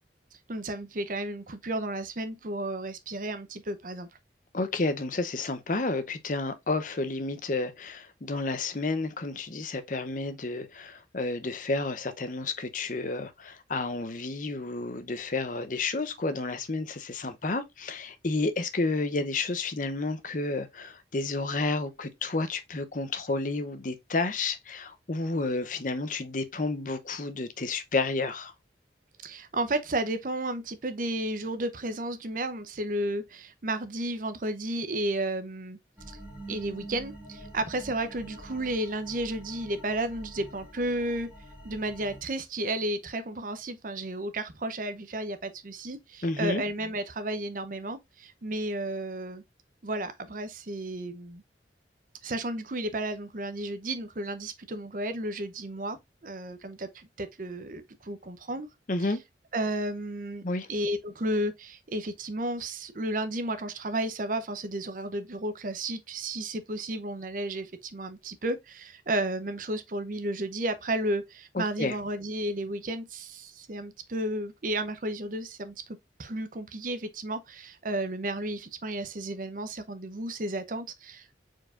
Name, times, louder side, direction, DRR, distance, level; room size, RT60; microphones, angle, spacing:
voice 1, 0.5-4.1 29.2-35.8 36.1-36.2 36.5-41.3 41.6-49.4 49.8-51.4 52.2-56.0 56.2-58.7 59.5-60.4 60.7-81.3, right 1 dB, 50° right, 0.7 m, -33 dB
voice 2, 4.5-28.5 46.2-46.6 58.9-59.2 60.4-60.7 71.5-72.0, left 3 dB, 45° left, 0.7 m, -31 dB
sound 1, 36.0-42.2, right 1 dB, 5° right, 2.2 m, -46 dB
4.6 x 4.5 x 2.4 m
head